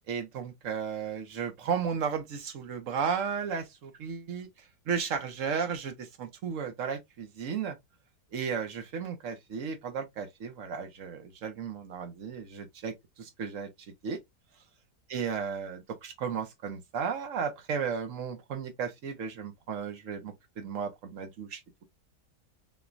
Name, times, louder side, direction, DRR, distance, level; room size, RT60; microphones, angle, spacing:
voice 1, 0.1-4.5 4.9-7.7 8.3-12.9 13.2-13.7 14.0-14.2 15.1-21.6, right 6 dB, 55° right, 1.1 m, -34 dB
5.9 x 2.3 x 2.5 m
omnidirectional pair, 1.8 m